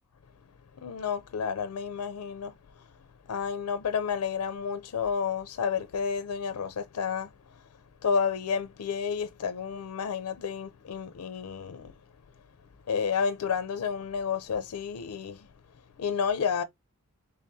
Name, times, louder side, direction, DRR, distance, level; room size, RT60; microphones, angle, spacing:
voice 1, 0.8-2.8 3.3-7.6 8.0-11.9 12.9-15.5 16.0-16.6, left 6 dB, 80° left, 0.4 m, -31 dB
3.4 x 3.4 x 2.6 m
head